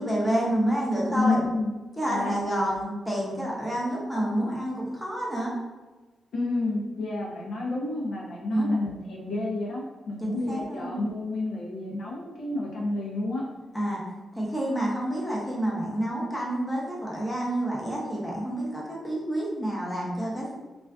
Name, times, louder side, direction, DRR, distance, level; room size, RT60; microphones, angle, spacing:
voice 1, 0.0-1.4 2.0-5.5 8.5-8.8 10.2-11.0 13.7-14.0 14.4-20.5, right 1 dB, 5° left, -5 dB, 0.6 m, -28 dB
voice 2, 1.1-1.7 2.1-2.8 6.3-13.4, left 2 dB, 80° left, -3 dB, 0.6 m, -30 dB
2.3 x 2.3 x 2.3 m, 1.2 s
wide cardioid pair, 125°, 0 cm